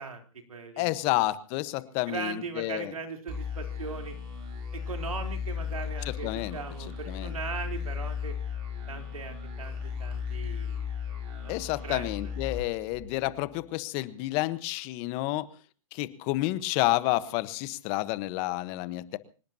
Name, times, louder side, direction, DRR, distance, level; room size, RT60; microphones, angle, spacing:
voice 1, 0.0-0.9 2.1-4.2 4.7-8.4 8.9-10.9 11.4-11.6 11.8-12.1 19.1-19.2, right 5 dB, 90° right, 4 dB, 3.7 m, -39 dB
voice 2, 0.8-2.9 6.0-6.6 7.1-7.3 11.5-15.5 15.9-19.2, left 18 dB, 35° left, 14 dB, 1.2 m, -30 dB
sound 1, 3.3-13.6, left 6 dB, 35° right, 7.3 m, -36 dB
25.0 x 19.5 x 2.9 m, 0.37 s
hypercardioid pair, 135°, 18 cm